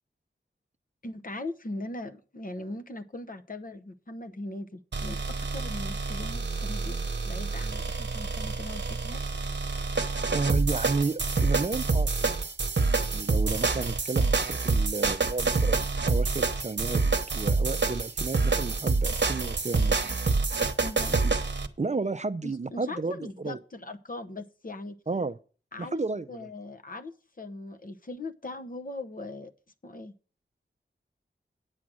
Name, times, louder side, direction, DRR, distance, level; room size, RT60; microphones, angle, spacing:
voice 1, 1.0-7.0 7.2-9.2 20.8-21.2 22.4-25.0 25.7-26.0 26.3-29.5 29.8-30.1, left 2 dB, 45° left, 0.9 m, -40 dB
sound 1, 4.9-21.7, right 3 dB, 65° right, 1.0 m, -27 dB
voice 2, 10.3-12.4 13.0-17.0 17.3-20.2 21.2-21.3 21.8-23.6 25.1-25.4 25.8-26.5, right 3 dB, 35° right, 0.5 m, -32 dB
9.4 x 7.4 x 6.3 m
wide cardioid pair, 75°, 20 cm